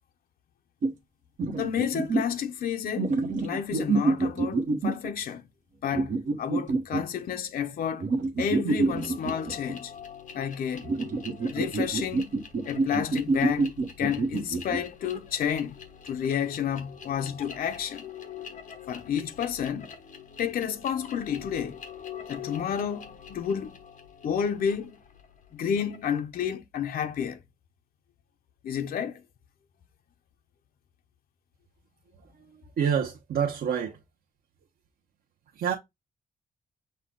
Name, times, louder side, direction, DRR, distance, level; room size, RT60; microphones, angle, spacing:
sound 1, 0.8-0.9 1.4-2.3 3.0-5.1 5.9-7.0 8.0-9.7 10.8-14.8, right 3 dB, 55° right, 1.0 m, -27 dB
voice 1, 1.6-3.1 3.4-5.4 5.8-6.1 6.4-8.1 8.4-9.9 10.3-10.9 11.5-12.3 12.6-13.7 14.0-15.8 16.0-18.0 18.9-19.9 20.4-21.8 22.3-23.8 24.2-25.0 25.5-27.4 28.6-29.2, left 8 dB, 75° left, 0.6 m, -30 dB
sound 2, 8.9-26.1, left 7 dB, 60° left, 1.1 m, -45 dB
voice 2, 32.2-34.0 35.5-35.7, right 7 dB, 85° right, 0.8 m, -28 dB
6.4 x 2.2 x 3.7 m
wide cardioid pair, 175°, 15 cm